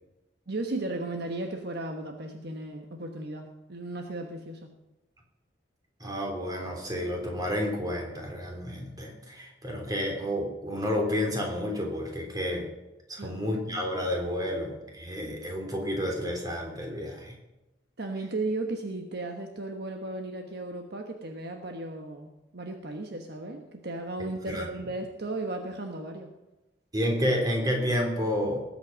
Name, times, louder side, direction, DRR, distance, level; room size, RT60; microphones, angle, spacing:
voice 1, 0.5-4.7 13.2-13.4 18.0-26.3, right 2 dB, 60° right, 4 dB, 1.3 m, -35 dB
voice 2, 6.0-12.7 13.1-17.4 24.5-24.7 26.9-28.6, equal, 20° right, 1 dB, 3.4 m, -30 dB
19.5 x 8.5 x 5.3 m, 1.0 s
head